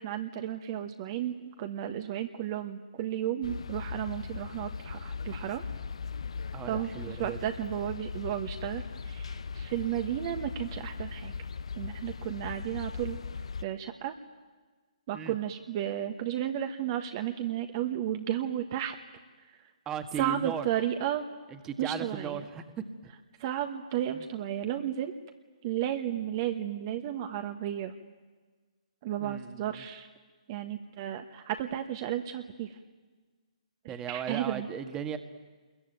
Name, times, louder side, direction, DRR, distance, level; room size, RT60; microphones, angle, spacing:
voice 1, 0.0-5.6 6.6-11.3 11.8-13.2 13.6-14.1 15.1-18.9 20.1-21.3 21.8-22.5 23.4-25.1 25.6-27.9 29.0-30.1 30.5-32.8 33.8-34.7, right 11 dB, 35° right, 6 dB, 1.4 m, -33 dB
sound 1, 3.4-13.6, left 5 dB, 60° left, 0.8 m, -39 dB
voice 2, 6.5-7.4 15.1-15.3 19.8-20.6 21.6-22.8 29.2-29.6 33.9-35.2, right 8 dB, 15° right, 8 dB, 1.7 m, -36 dB
27.0 x 22.0 x 9.2 m, 1.3 s
figure-of-eight pair, 130°, 4 cm